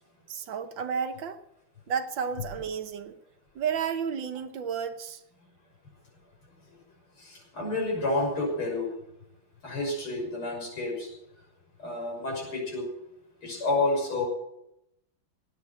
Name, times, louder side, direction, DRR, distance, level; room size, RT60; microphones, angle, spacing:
voice 1, 0.3-1.4 1.9-3.2 3.5-5.2, right 7 dB, 65° right, 9 dB, 1.7 m, -32 dB
voice 2, 7.2-8.9 9.6-11.1 11.8-12.9 13.4-14.2, left 2 dB, 85° left, 0 dB, 7.1 m, -29 dB
18.5 x 9.5 x 7.5 m, 0.81 s
omnidirectional pair, 2.3 m